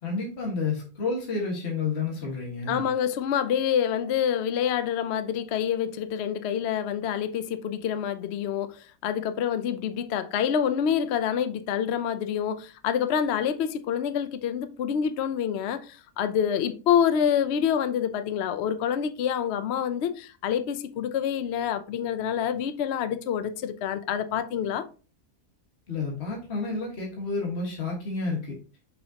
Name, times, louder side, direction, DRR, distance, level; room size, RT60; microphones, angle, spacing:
voice 1, 0.0-2.8 25.9-28.5, left 4 dB, 45° left, 1.9 m, -30 dB
voice 2, 2.7-24.8, left 8 dB, 60° left, 0.7 m, -27 dB
6.5 x 5.4 x 2.8 m
omnidirectional pair, 1.7 m